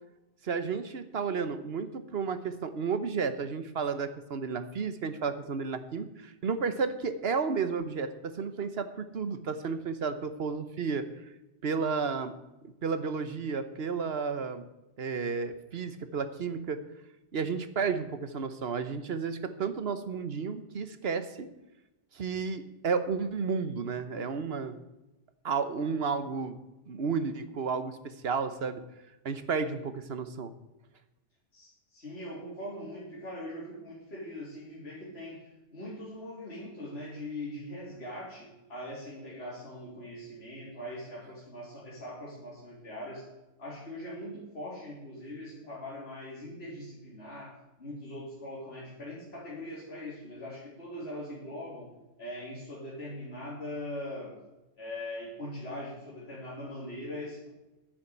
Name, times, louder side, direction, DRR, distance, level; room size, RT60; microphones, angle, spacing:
voice 1, 0.4-11.0 11.6-12.3 12.8-14.7 15.0-16.8 17.3-21.5 22.1-24.8 25.4-26.6 26.9-28.8 29.2-30.5, right 5 dB, 60° right, 11 dB, 1.2 m, -32 dB
voice 2, 31.5-43.2 43.6-51.9 52.2-54.4 54.8-57.5, left 1 dB, 60° left, -7 dB, 3.6 m, -41 dB
10.0 x 8.8 x 7.9 m, 0.99 s
omnidirectional pair, 1.2 m